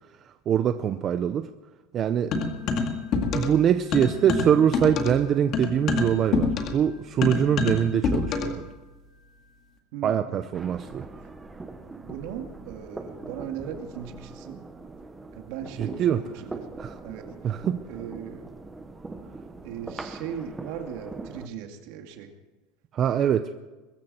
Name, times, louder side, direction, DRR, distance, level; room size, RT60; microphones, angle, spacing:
voice 1, 0.5-1.5 1.9-2.3 3.3-8.6 10.0-11.0 15.8-16.2 16.8-17.0 17.4-17.8 22.9-23.5, right 9 dB, 25° right, 9 dB, 0.6 m, -23 dB
sound 1, 2.3-3.6 3.9-8.6, left 4 dB, 35° left, 2.0 m, -26 dB
voice 2, 9.9-10.4 11.0-11.1 11.9-14.6 15.3-16.7 17.0-17.6 17.9-18.5 19.6-22.3, right 8 dB, 55° right, 5 dB, 2.3 m, -38 dB
sound 2, 10.5-21.5, right 3 dB, 10° right, 1.0 m, -41 dB
22.0 x 14.0 x 4.4 m, 1.2 s
supercardioid pair, 170°, 0 cm